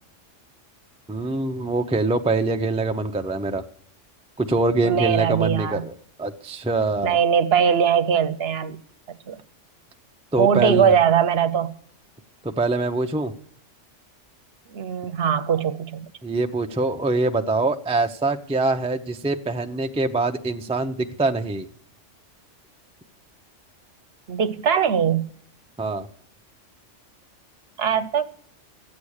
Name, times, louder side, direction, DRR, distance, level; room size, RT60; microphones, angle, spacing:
voice 1, 1.1-3.6 4.4-7.2 10.3-10.9 12.4-13.3 16.2-21.7 25.8-26.1, right 3 dB, 10° right, 0.3 m, -24 dB
voice 2, 4.8-5.8 7.0-8.8 9.3-9.4 10.4-11.7 14.7-16.1 24.3-25.3 27.8-28.2, right 7 dB, 60° right, 0.9 m, -21 dB
13.5 x 8.5 x 6.4 m
omnidirectional pair, 1.3 m